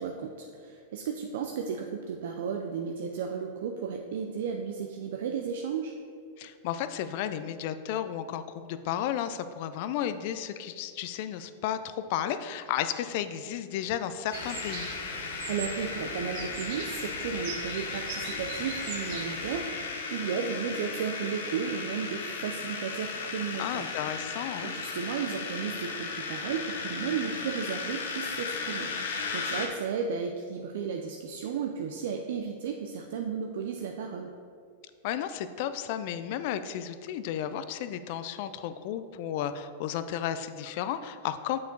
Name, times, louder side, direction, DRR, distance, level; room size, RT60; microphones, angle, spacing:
voice 1, 0.0-5.9 15.5-23.9 24.6-28.9 29.3-34.3, right 6 dB, 70° right, 3 dB, 0.5 m, -34 dB
voice 2, 6.4-14.9 23.6-24.7 35.0-41.6, left 10 dB, 55° left, 11 dB, 0.4 m, -33 dB
sound 1, 14.3-29.7, left 4 dB, 80° left, 0.9 m, -36 dB
sound 2, 14.3-19.6, right 5 dB, 55° right, 1.0 m, -42 dB
6.9 x 5.4 x 3.9 m, 2.3 s
hypercardioid pair, 115°, 0 cm